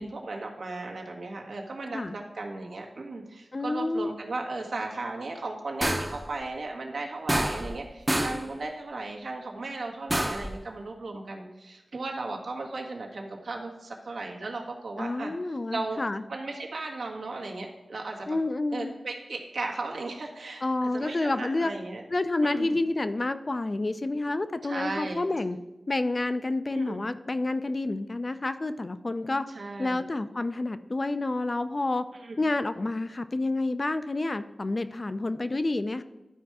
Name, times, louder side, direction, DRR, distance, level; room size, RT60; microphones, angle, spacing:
voice 1, 0.0-15.3 15.7-16.0 16.3-18.4 18.7-22.0 22.4-22.7 24.7-25.2 26.7-27.0 29.5-30.0 32.2-32.4, right 3 dB, 80° right, 1 dB, 1.6 m, -36 dB
voice 2, 3.5-4.1 15.0-16.2 18.3-18.9 20.6-21.7 22.1-25.6 25.9-29.5 29.8-32.0 32.4-36.0, left 2 dB, 35° left, 11 dB, 0.4 m, -29 dB
sound 1, 5.8-6.3 7.3-7.8 8.1-8.5 10.1-10.5, right 1 dB, 15° right, 0.7 m, -27 dB
11.5 x 4.6 x 4.8 m, 1.0 s
wide cardioid pair, 90°, 0 cm